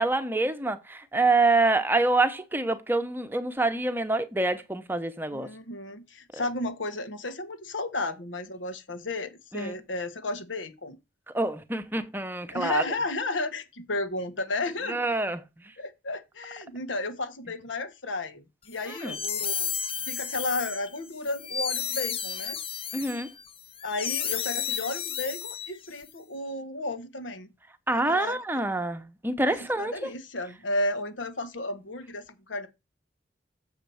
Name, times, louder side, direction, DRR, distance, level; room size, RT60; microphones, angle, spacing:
voice 1, 0.0-5.5 6.3-6.4 9.5-9.7 11.3-12.8 14.9-15.4 18.9-19.2 22.9-23.3 27.9-29.9, right 2 dB, 10° right, 0.8 m, -26 dB
voice 2, 5.3-11.0 12.5-15.1 15.8-19.7 20.1-22.6 23.8-27.5 27.9-28.7 29.4-32.7, left 2 dB, 90° left, 1.3 m, -33 dB
sound 1, 18.8-26.0, left 7 dB, 30° left, 0.6 m, -33 dB
7.2 x 4.4 x 6.9 m
head